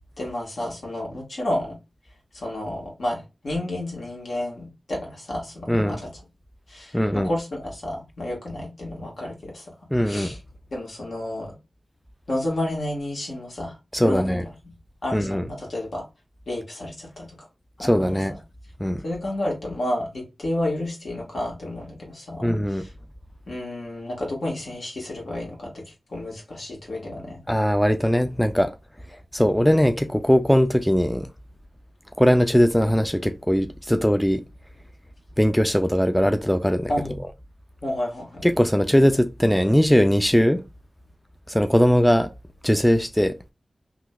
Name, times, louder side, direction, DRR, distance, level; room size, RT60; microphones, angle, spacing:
voice 1, 0.2-1.7 2.3-6.1 6.7-9.7 10.0-10.4 10.7-11.5 12.3-13.8 14.0-14.5 15.0-16.0 16.5-17.3 17.8-18.2 19.0-22.9 23.5-27.4 36.9-37.1 37.8-38.5, left 1 dB, 70° left, 1.6 m, -31 dB
voice 2, 6.9-7.3 9.9-10.4 13.9-14.4 15.1-15.5 17.8-18.3 18.8-19.0 22.4-22.8 27.5-28.8 29.3-31.3 32.2-34.4 35.4-36.9 38.4-40.6 41.5-42.3 42.6-43.4, equal, 5° left, 0.3 m, -20 dB
3.7 x 2.6 x 2.3 m
wide cardioid pair, 75°, 0 cm